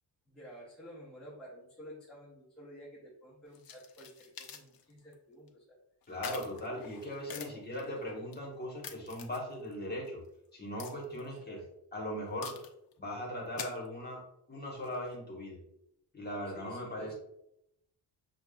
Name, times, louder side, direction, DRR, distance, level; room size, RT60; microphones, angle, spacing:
voice 1, 0.3-5.8 7.3-7.6 7.9-8.0 11.1-11.6 16.5-17.1, equal, ahead, -7 dB, 0.7 m, -51 dB
sound 1, 3.5-5.1 5.5-5.6 6.0-8.4 8.8-9.7 10.1-10.2 10.8-11.4 12.4-12.9 13.4-14.1 14.8-15.2, left 7 dB, 55° left, 0.6 m, -46 dB
voice 2, 6.1-10.2 10.5-11.6 11.9-12.5 13.0-14.2 14.5-15.6 16.1-17.1, equal, 20° left, -2 dB, 1.0 m, -39 dB
6.5 x 2.3 x 2.2 m, 0.79 s
wide cardioid pair, 160°, 43 cm